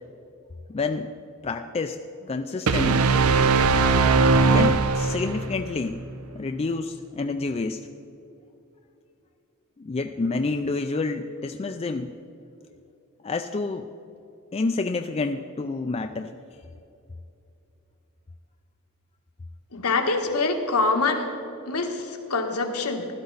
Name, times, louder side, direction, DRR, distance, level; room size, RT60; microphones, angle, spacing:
voice 1, 0.7-1.1 1.4-3.1 4.5-6.0 6.3-7.8 9.8-12.1 13.2-13.9 14.5-16.3, left 3 dB, 30° left, 5 dB, 0.4 m, -28 dB
sound 1, 2.7-5.6, right 4 dB, 70° right, 0.6 m, -19 dB
voice 2, 19.7-21.3 21.7-23.1, left 3 dB, 85° left, 3 dB, 1.5 m, -25 dB
16.0 x 12.0 x 4.0 m, 2.7 s
head